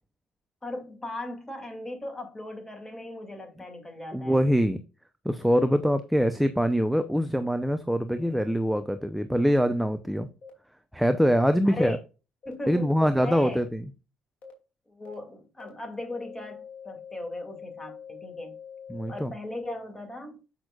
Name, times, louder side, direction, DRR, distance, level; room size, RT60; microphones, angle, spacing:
voice 1, 0.6-4.5 8.1-8.5 11.6-12.0 12.4-13.6 14.9-18.6 19.1-20.4, left 1 dB, 15° left, 2.5 m, -38 dB
voice 2, 4.1-4.8 5.2-10.3 10.9-12.0 12.7-13.8 18.9-19.3, equal, ahead, 0.7 m, -24 dB
sound 1, 10.4-10.5 11.4-11.5 12.4-12.5 13.4-13.5 14.4-14.5 15.1-15.2 15.6-15.7 16.1-19.3, left 7 dB, 55° left, 2.7 m, -44 dB
8.1 x 6.0 x 2.4 m
supercardioid pair, 75°, 3 cm